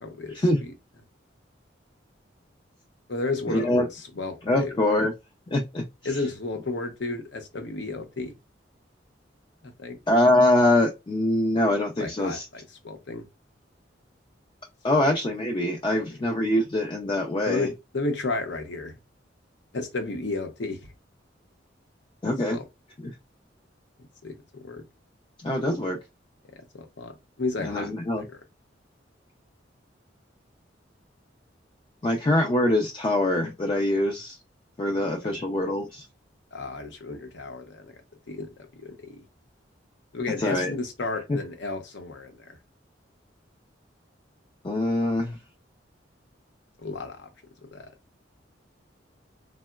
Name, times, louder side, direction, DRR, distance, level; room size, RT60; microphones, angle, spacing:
voice 1, 0.0-0.7 3.1-4.8 6.0-8.3 9.6-10.0 12.0-13.2 15.0-15.1 15.9-16.2 17.4-19.0 19.7-20.9 22.5-22.7 24.2-24.8 26.7-28.4 35.0-35.4 36.5-38.0 38.3-38.5 38.8-39.2 40.1-42.6 46.8-47.3 47.6-47.9, left 3 dB, 70° left, 0.7 m, -33 dB
voice 2, 3.5-3.8 4.5-5.1 5.5-5.8 10.1-12.4 14.8-17.7 22.2-22.6 25.4-26.0 27.6-28.2 32.0-34.4 34.8-36.0 40.4-40.7 41.3-41.4 44.6-45.4, left 1 dB, 25° left, 0.4 m, -23 dB
3.7 x 2.0 x 2.2 m
head